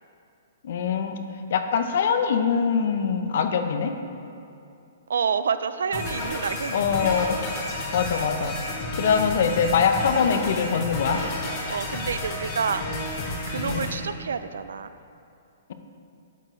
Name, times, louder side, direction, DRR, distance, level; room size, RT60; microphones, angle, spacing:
voice 1, 0.6-1.2 1.5-3.9 6.7-7.4 7.9-8.6 9.0-11.2 13.7-13.9, left 6 dB, 60° left, 7 dB, 0.6 m, -23 dB
voice 2, 5.1-7.2 11.7-12.8 13.5-14.9, right 6 dB, 85° right, 12 dB, 0.3 m, -28 dB
sound 1, 5.9-13.9, left 1 dB, 40° left, 1.5 m, -31 dB
13.0 x 4.5 x 3.1 m, 2.6 s
hypercardioid pair, 150°, 0 cm